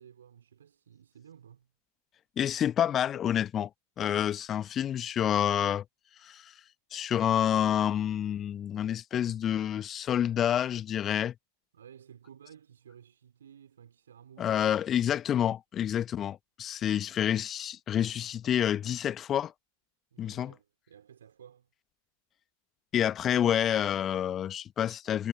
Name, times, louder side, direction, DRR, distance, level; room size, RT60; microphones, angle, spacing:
voice 1, 0.0-1.7 11.7-14.8 20.1-21.7, right 8 dB, 65° right, 4.9 m, -54 dB
voice 2, 2.4-3.7 4.0-5.8 6.2-6.5 6.9-11.3 14.4-19.5 20.2-20.5 22.9-25.3, left 10 dB, 25° left, 1.2 m, -28 dB
figure-of-eight pair, 90°, 0 cm